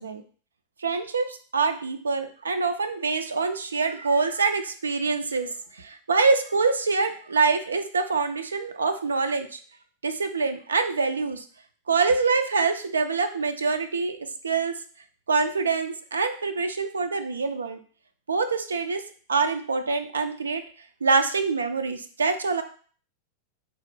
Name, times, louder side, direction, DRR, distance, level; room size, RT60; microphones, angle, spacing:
voice 1, 0.8-9.6 10.0-11.4 11.9-14.2 14.4-14.8 15.3-17.8 18.3-19.0 19.3-20.6 21.0-22.6, right 4 dB, 75° right, 8 dB, 0.3 m, -25 dB
4.1 x 2.4 x 3.2 m, 0.43 s
figure-of-eight pair, 90°, 0 cm